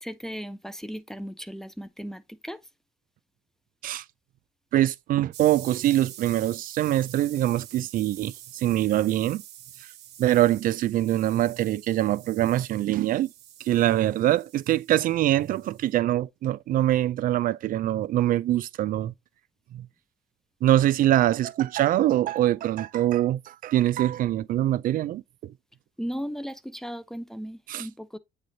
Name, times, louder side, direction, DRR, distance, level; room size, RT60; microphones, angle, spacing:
voice 1, 0.0-2.6 26.0-28.2, equal, 5° left, 0.6 m, -36 dB
voice 2, 4.7-9.4 10.2-13.3 13.6-19.1 19.7-19.9 20.6-25.5 27.7-27.9, right 13 dB, 55° right, 0.4 m, -24 dB
sound 1, 5.3-16.0, right 12 dB, 80° right, 1.0 m, -46 dB
8.5 x 3.3 x 3.9 m
cardioid pair, 110°, 17 cm